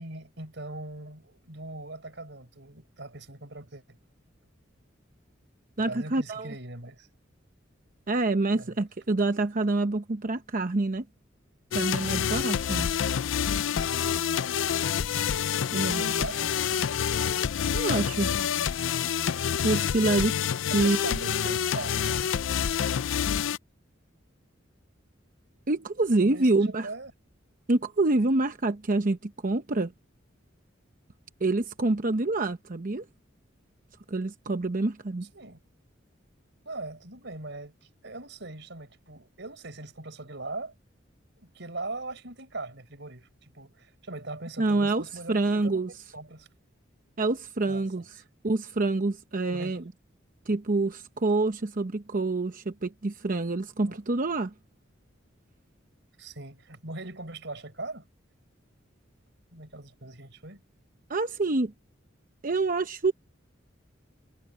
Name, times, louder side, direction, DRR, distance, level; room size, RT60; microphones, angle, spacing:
voice 1, 0.0-4.0 5.8-7.1 8.5-8.8 15.8-16.5 20.7-21.3 21.7-22.1 26.2-27.1 35.3-35.6 36.7-40.7 41.4-45.8 46.1-46.5 47.7-48.1 49.5-49.8 53.9-54.0 56.2-58.1 59.5-60.6, right 2 dB, 65° right, 5.4 m, -40 dB
voice 2, 5.8-6.5 8.1-11.1 11.7-12.9 15.7-16.0 17.7-18.3 19.6-20.4 20.7-21.1 21.4-21.5 25.7-26.9 27.7-29.9 31.4-33.0 34.1-35.3 44.6-45.9 47.2-48.2 48.4-49.8 50.5-54.5 61.1-61.7 62.4-63.1, right 2 dB, 45° right, 0.9 m, -26 dB
sound 1, 11.7-23.6, left 8 dB, 90° left, 0.5 m, -27 dB
head